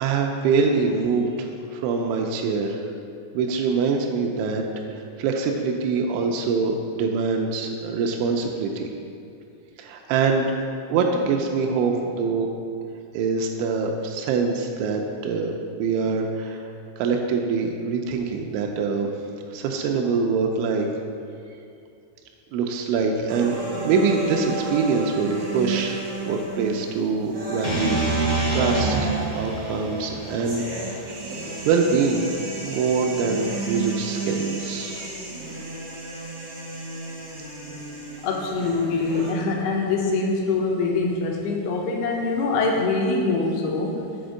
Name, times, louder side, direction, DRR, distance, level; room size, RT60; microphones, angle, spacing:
voice 1, 0.0-2.8 3.3-4.6 4.9-8.9 9.8-10.5 10.9-12.5 13.1-16.6 17.0-19.1 19.5-20.9 22.5-23.6 23.8-26.0 26.3-31.1 31.4-32.3 32.6-35.0, right 5 dB, 85° right, 2 dB, 2.9 m, -24 dB
sound 1, 23.3-39.3, right 2 dB, 65° right, 1.3 m, -33 dB
sound 2, 27.6-31.8, right 3 dB, 60° left, 0.8 m, -27 dB
voice 2, 38.2-44.0, left 3 dB, 75° left, 0 dB, 2.4 m, -24 dB
7.9 x 4.3 x 6.3 m, 2.5 s
omnidirectional pair, 5.4 m